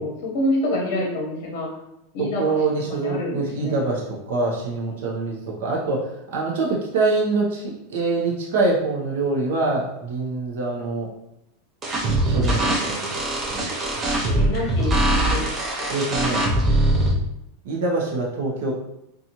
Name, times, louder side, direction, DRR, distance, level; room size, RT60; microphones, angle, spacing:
voice 1, 0.0-1.7 2.1-2.5 2.9-3.8 14.4-15.9, left 1 dB, 45° left, -2 dB, 0.8 m, -27 dB
voice 2, 2.2-11.1 12.1-13.2 13.5-13.7 14.2-14.4 15.9-16.5 17.6-18.7, right 3 dB, 65° right, -3 dB, 0.7 m, -25 dB
sound 1, 11.8-17.1, right 1 dB, 15° right, 0.4 m, -22 dB
2.7 x 2.4 x 2.8 m, 0.83 s
supercardioid pair, 180°, 0 cm